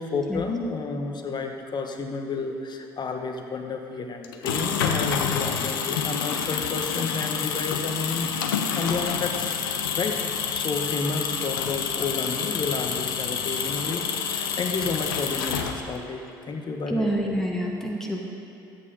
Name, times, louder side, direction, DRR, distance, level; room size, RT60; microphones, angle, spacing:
voice 1, 0.0-9.5 10.0-10.3 10.5-17.2, left 4 dB, 40° left, 4 dB, 1.2 m, -31 dB
sound 1, 4.2-16.1, left 7 dB, 80° left, 0.7 m, -28 dB
voice 2, 16.9-18.2, right 1 dB, 5° left, -1 dB, 1.9 m, -27 dB
13.0 x 8.4 x 4.1 m, 2.6 s
figure-of-eight pair, 55°, 12 cm